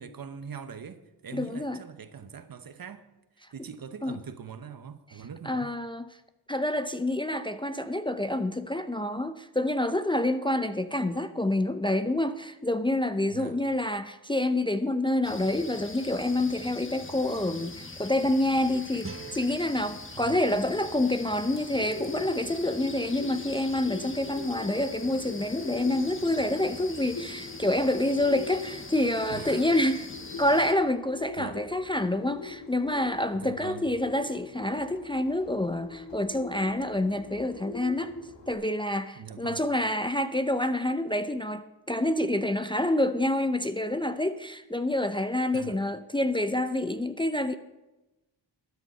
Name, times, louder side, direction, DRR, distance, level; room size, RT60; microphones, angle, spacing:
voice 1, 0.0-3.1 3.5-5.7 13.3-13.6 20.1-20.4 29.3-29.7 31.4-31.6 33.3-33.9 39.1-39.6 45.5-45.8, right 7 dB, 50° right, 1.0 m, -42 dB
voice 2, 1.3-1.8 4.0-4.2 5.4-6.1 6.5-30.1 30.4-38.1 38.5-47.5, left 1 dB, 10° left, 0.6 m, -27 dB
sound 1, 15.2-30.7, left 3 dB, 25° left, 1.4 m, -43 dB
sound 2, 19.0-22.1, right 5 dB, 30° right, 1.2 m, -47 dB
Bird, 21.5-38.5, left 4 dB, 75° left, 2.0 m, -43 dB
13.0 x 9.2 x 5.5 m
cardioid pair, 65°, 44 cm